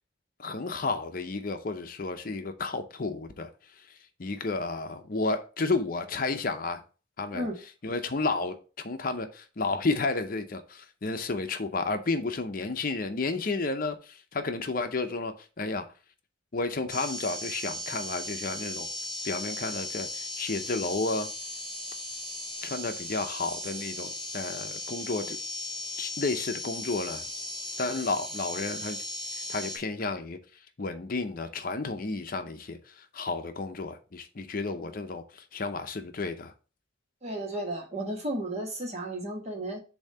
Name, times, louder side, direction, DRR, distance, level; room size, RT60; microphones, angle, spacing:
voice 1, 0.4-3.5 4.2-6.8 7.2-7.5 7.8-8.6 8.8-15.9 16.5-18.9 19.2-21.3 22.6-25.4 26.0-27.3 27.8-29.0 29.5-30.4 30.8-36.5, left 3 dB, 50° left, 0.6 m, -32 dB
sound 1, 16.9-29.8, left 1 dB, 5° left, 2.3 m, -37 dB
voice 2, 37.2-39.8, right 1 dB, 35° right, 1.4 m, -33 dB
7.1 x 2.8 x 5.4 m
head